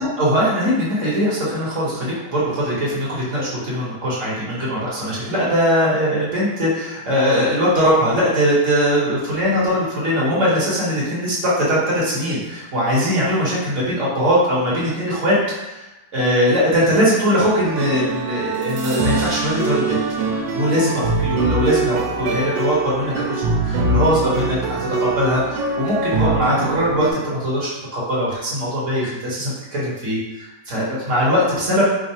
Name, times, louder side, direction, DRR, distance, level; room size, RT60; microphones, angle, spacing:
voice 1, 0.0-15.3 15.6-20.0 20.5-31.8, equal, 50° right, -7 dB, 1.2 m, -21 dB
sound 1, 17.6-27.1, right 3 dB, 80° right, 1.4 m, -23 dB
3.7 x 2.0 x 4.2 m, 1.0 s
omnidirectional pair, 2.0 m